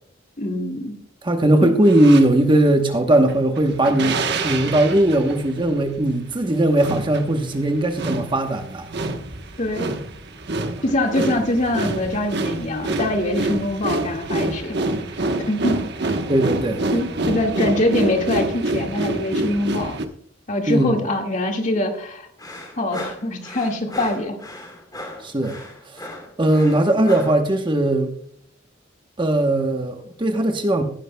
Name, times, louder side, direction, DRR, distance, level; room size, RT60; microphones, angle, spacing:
voice 1, 0.4-1.0 1.6-1.7 9.6-9.9 10.8-14.8 15.4-16.1 16.9-20.0 20.5-22.3 22.8-24.4, left 1 dB, 40° left, 3 dB, 1.9 m, -23 dB
voice 2, 1.2-8.9 16.3-16.8 20.7-21.0 25.2-25.6 25.9-26.0 26.4-28.1 29.2-30.8, right 1 dB, 25° right, 5 dB, 1.0 m, -19 dB
sound 1, 1.8-2.3 3.1-20.1, right 2 dB, 55° right, 1.1 m, -27 dB
sound 2, 22.4-27.4, left 1 dB, 20° left, 2.5 m, -36 dB
18.0 x 11.0 x 2.2 m, 0.65 s
head